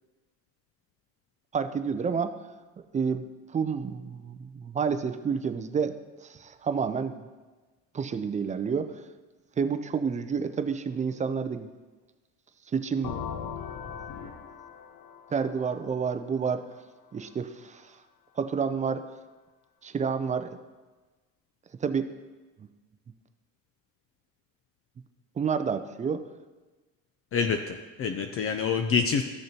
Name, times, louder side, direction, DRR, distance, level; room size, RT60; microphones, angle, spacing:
voice 1, 1.5-2.4 2.9-3.3 3.5-7.2 7.9-9.1 9.6-11.7 12.7-13.3 15.3-16.6 17.1-18.0 18.4-19.1 19.8-20.6 21.8-22.1 22.6-22.7 25.4-26.2, right 6 dB, 20° right, 10 dB, 0.4 m, -29 dB
sound 1, 13.0-16.8, left 7 dB, 55° left, 1.1 m, -39 dB
voice 2, 27.3-29.2, left 6 dB, 35° left, 6 dB, 0.5 m, -27 dB
14.0 x 6.5 x 2.9 m, 1.3 s
supercardioid pair, 105°, 39 cm